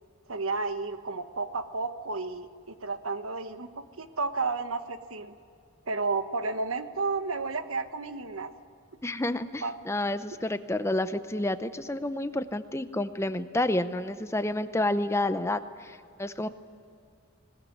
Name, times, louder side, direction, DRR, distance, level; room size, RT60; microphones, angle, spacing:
voice 1, 0.3-5.3 5.9-8.5 9.6-9.8, right 3 dB, 90° right, 9 dB, 1.3 m, -32 dB
voice 2, 9.0-16.5, left 1 dB, 15° left, 11 dB, 0.7 m, -29 dB
20.0 x 19.5 x 9.6 m, 2.4 s
head